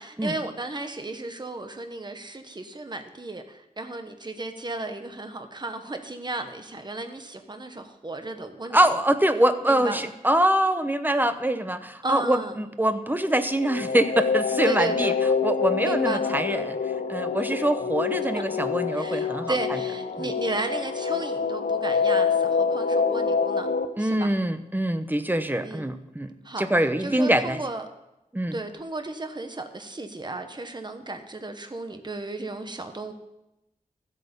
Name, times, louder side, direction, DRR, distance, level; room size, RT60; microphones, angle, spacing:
voice 1, 0.0-8.9 9.6-10.1 12.0-12.6 14.6-15.2 15.8-16.6 17.5-17.6 18.9-23.7 24.0-24.3 25.6-25.9 26.4-26.7 27.0-27.9 28.5-33.1, right 2 dB, 30° right, 7 dB, 1.0 m, -34 dB
voice 2, 8.7-15.1 15.4-16.8 17.1-19.6 20.2-20.3 24.0-27.6 28.3-28.6, right 1 dB, 10° right, 10 dB, 0.8 m, -24 dB
sound 1, 13.2-23.9, left 5 dB, 75° left, 0.8 m, -26 dB
13.5 x 8.1 x 5.2 m, 0.91 s
wide cardioid pair, 90°, 15 cm